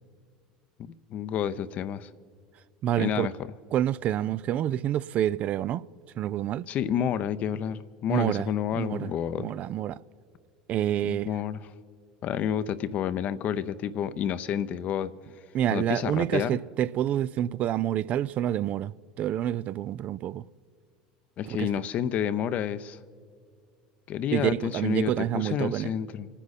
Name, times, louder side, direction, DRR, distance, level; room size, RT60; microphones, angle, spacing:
voice 1, 0.8-2.1 3.0-3.3 6.7-9.5 11.0-11.6 12.2-15.1 15.7-16.6 21.4-23.0 24.1-26.3, left 9 dB, 50° left, 0.7 m, -29 dB
voice 2, 2.8-3.3 3.7-5.8 6.2-6.7 8.1-10.0 10.7-11.3 15.5-18.9 19.2-20.4 21.5-21.7 24.3-25.9, right 11 dB, 45° right, 0.3 m, -28 dB
27.5 x 9.9 x 4.1 m
hypercardioid pair, 85°, 3 cm